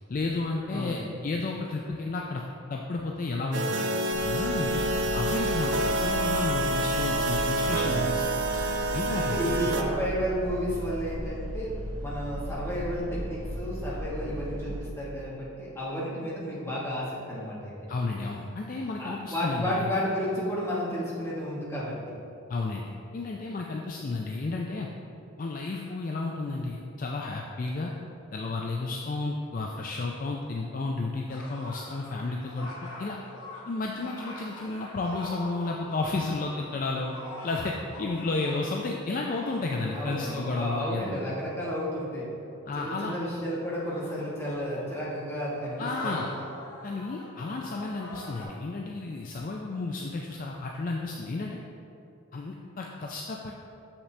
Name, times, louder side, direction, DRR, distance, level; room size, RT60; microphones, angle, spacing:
voice 1, 0.1-2.4 2.7-3.8 4.2-4.8 5.1-8.3 8.9-9.7 17.9-19.9 22.5-24.9 25.4-27.9 28.3-32.7 33.0-33.2 33.7-37.2 37.4-41.2 42.7-43.1 45.8-46.3 46.8-51.6 52.3-53.5, left 3 dB, 40° left, 0 dB, 0.3 m, -32 dB
voice 2, 0.7-1.1 9.1-11.7 12.0-17.7 19.0-22.0 39.9-42.3 42.7-46.3, equal, 10° left, -7 dB, 1.2 m, -32 dB
sound 1, 3.5-9.8, right 1 dB, 55° right, 0.5 m, -28 dB
sound 2, 4.1-14.8, equal, 90° right, 1.2 m, -36 dB
sound 3, 31.3-42.1 43.0-43.1 43.7-48.5, left 1 dB, 75° left, 1.2 m, -45 dB
6.7 x 5.7 x 3.2 m, 2.7 s
head